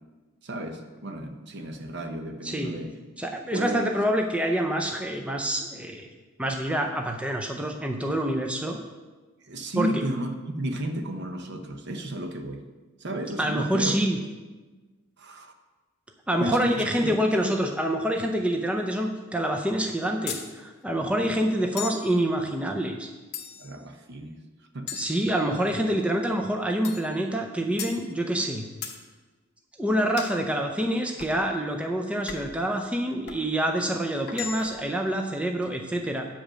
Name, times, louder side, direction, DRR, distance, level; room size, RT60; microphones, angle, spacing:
voice 1, 0.4-2.9 3.5-3.8 9.4-12.6 13.0-14.0 15.2-15.5 16.4-17.1 17.4-17.5 23.6-24.4 24.7-24.9, right 1 dB, 55° right, 6 dB, 0.8 m, -33 dB
voice 2, 2.4-2.8 3.2-6.1 6.4-8.8 9.8-9.9 13.4-14.2 16.3-23.1 24.9-28.7 29.8-36.3, right 1 dB, 5° right, 3 dB, 0.5 m, -26 dB
sound 1, 20.3-20.5 21.8-22.1 23.3-23.8 24.9-25.8 26.8-27.1 27.8-28.0 28.8-29.0 30.2-30.4 31.2-31.4 32.3-32.6 33.3-33.5 34.3-34.9, left 7 dB, 50° left, 0.9 m, -37 dB
8.6 x 5.2 x 6.3 m, 1.3 s
head